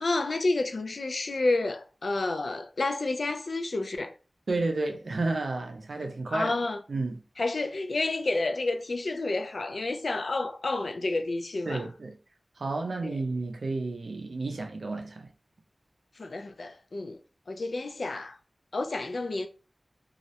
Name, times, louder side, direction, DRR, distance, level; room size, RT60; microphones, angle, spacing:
voice 1, 0.0-4.1 6.0-6.8 7.4-11.8 13.0-13.2 16.2-17.2 17.5-18.4 18.7-19.5, left 2 dB, 75° left, 0.3 m, -30 dB
voice 2, 4.5-6.5 6.9-7.2 11.7-12.2 12.6-15.3, right 3 dB, 80° right, 0.4 m, -31 dB
2.3 x 2.0 x 2.7 m
wide cardioid pair, 70°, 0 cm